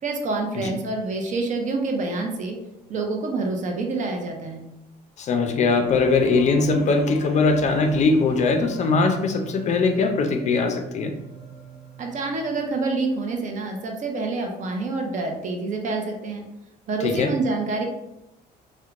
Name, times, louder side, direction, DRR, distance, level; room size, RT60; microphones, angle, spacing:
voice 1, 0.0-2.6 2.9-4.6 12.0-16.4 16.9-17.9, right 3 dB, 45° right, 2 dB, 0.5 m, -27 dB
voice 2, 5.2-11.1 17.0-17.3, left 4 dB, 45° left, 4 dB, 0.4 m, -21 dB
sound 1, 5.9-12.9, right 3 dB, ahead, 0.7 m, -40 dB
2.8 x 2.1 x 2.4 m, 0.90 s
cardioid pair, 110°, 17 cm